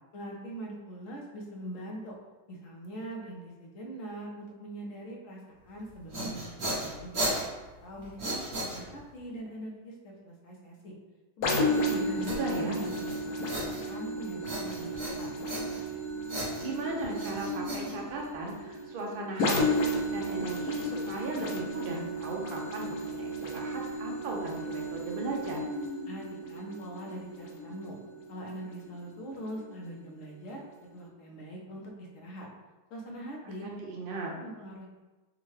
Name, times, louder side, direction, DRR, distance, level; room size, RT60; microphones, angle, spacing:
voice 1, 0.1-2.1 2.5-7.3 7.8-10.9 11.4-14.9 15.2-15.3 26.1-28.0 28.3-32.5 32.9-33.7 34.3-34.9, right 1 dB, 65° left, -1 dB, 0.9 m, -42 dB
sound 1, 5.8-9.2 12.3-14.1 14.4-16.0 16.3-18.5, right 1 dB, 50° right, 1.1 m, -36 dB
sound 2, 11.4-28.9 29.5-29.6, equal, 80° left, 1.2 m, -33 dB
voice 2, 12.0-12.8 16.6-25.6 33.4-34.3, right 2 dB, 75° right, -1 dB, 0.5 m, -37 dB
3.6 x 2.2 x 3.1 m, 1.2 s
omnidirectional pair, 1.7 m